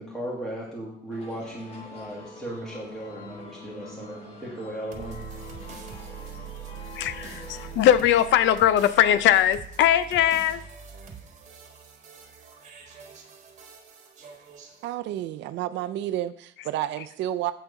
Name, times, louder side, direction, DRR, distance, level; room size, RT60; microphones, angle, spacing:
voice 1, 0.0-5.2, right 1 dB, ahead, -4 dB, 1.4 m, -36 dB
sound 1, 1.1-7.8, left 3 dB, 30° left, 1.4 m, -44 dB
sound 2, 4.9-14.9, right 9 dB, 40° right, 1.3 m, -43 dB
voice 2, 7.0-10.6, left 11 dB, 75° left, 14 dB, 0.6 m, -20 dB
voice 3, 14.8-17.5, right 13 dB, 70° right, 11 dB, 0.5 m, -30 dB
8.0 x 6.2 x 4.8 m, 0.64 s
cardioid pair, 180°, 19 cm